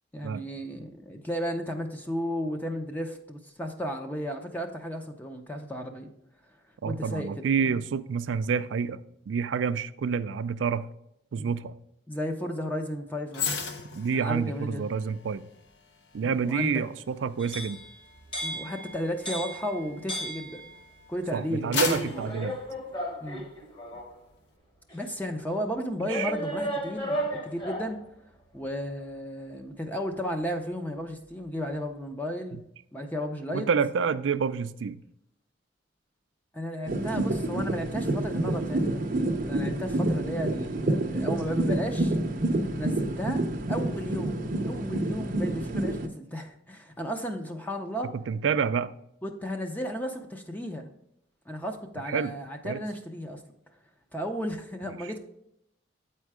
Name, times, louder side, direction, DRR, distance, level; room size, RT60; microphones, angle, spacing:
voice 1, 0.1-6.1 6.9-7.8 11.4-11.5 12.1-13.6 14.1-14.9 16.2-16.8 18.4-20.8 21.1-22.3 23.2-23.5 24.9-28.0 28.5-32.6 32.9-33.7 36.5-42.2 42.7-48.1 49.2-50.9 51.5-53.4 54.1-55.2, equal, 10° left, 4 dB, 0.6 m, -34 dB
voice 2, 6.8-9.0 9.3-10.9 11.3-11.7 13.9-15.4 16.1-17.8 21.3-22.6 26.0-26.3 33.5-35.0 48.3-48.9 52.1-52.3 52.6-52.8 54.9-55.0, right 6 dB, 85° right, 14 dB, 0.4 m, -28 dB
sound 1, 13.3-20.7 21.2-23.6 23.9-24.1, left 5 dB, 65° left, 0.8 m, -37 dB
sound 2, 17.4-21.0 21.9-24.2 24.9-25.0 26.1-28.0, equal, 25° left, 1.2 m, -35 dB
sound 3, 36.9-46.1, right 1 dB, 50° right, 0.7 m, -28 dB
8.3 x 4.4 x 4.8 m, 0.78 s
head